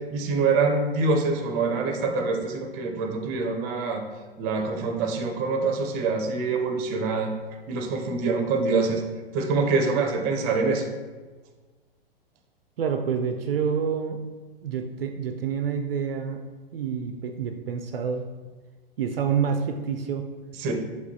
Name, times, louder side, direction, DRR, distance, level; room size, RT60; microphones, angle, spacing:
voice 1, 0.1-4.0 4.4-7.3 7.7-9.0 9.3-10.8 20.6-20.7, right 4 dB, 30° right, 4 dB, 0.6 m, -25 dB
voice 2, 12.8-14.2 14.6-16.4 16.7-18.2 19.0-20.3, right 7 dB, 70° right, 5 dB, 0.4 m, -28 dB
5.1 x 3.2 x 2.7 m, 1.3 s
figure-of-eight pair, 100°, 30 cm